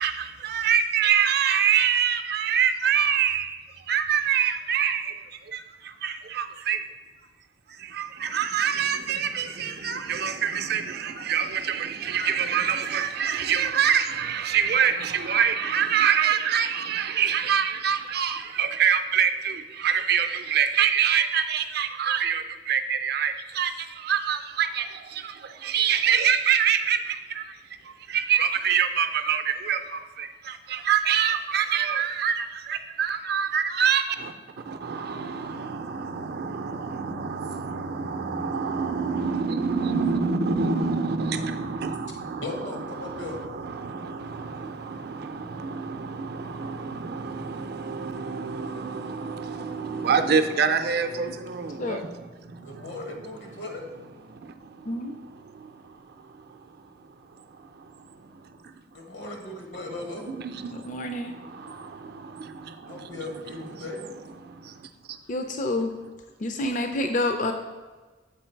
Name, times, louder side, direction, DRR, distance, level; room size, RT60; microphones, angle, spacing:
voice 1, 0.4-3.5 3.9-5.0 6.0-6.8 8.2-19.6 19.8-22.4 22.7-23.7 24.1-24.8 25.7-27.0 28.3-29.4 29.7-29.8 30.9-32.3 32.7-34.0 34.9-42.6 43.8-43.9 45.9-46.3 46.6-52.0 60.4-60.5, right 7 dB, 60° right, 0.5 m, -25 dB
voice 2, 42.4-43.4 52.6-53.9 58.9-60.3 62.9-64.1, left 2 dB, 80° left, 1.4 m, -37 dB
voice 3, 60.8-61.4 65.3-65.9 66.4-67.5, left 1 dB, 45° left, 0.5 m, -28 dB
7.2 x 4.5 x 4.5 m
head